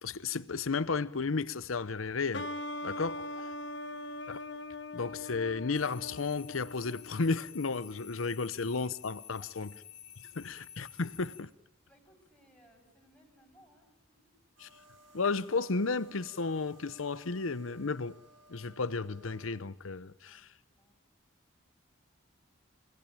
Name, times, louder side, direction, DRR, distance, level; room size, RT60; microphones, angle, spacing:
voice 1, 0.0-2.5 2.8-3.2 4.3-4.4 4.9-9.7 10.4-11.5 14.6-14.7 15.1-18.2 18.5-20.5, left 4 dB, 90° left, 0.8 m, -33 dB
sound 1, 2.3-7.8, left 1 dB, 60° left, 1.5 m, -41 dB
voice 2, 3.1-4.1 9.4-9.7 11.9-14.3 20.2-21.0, equal, 5° left, 6.9 m, -64 dB
sound 2, 5.7-11.4, left 9 dB, 35° left, 1.8 m, -51 dB
sound 3, 14.6-19.5, right 1 dB, 80° right, 8.0 m, -59 dB
28.5 x 18.5 x 9.0 m
head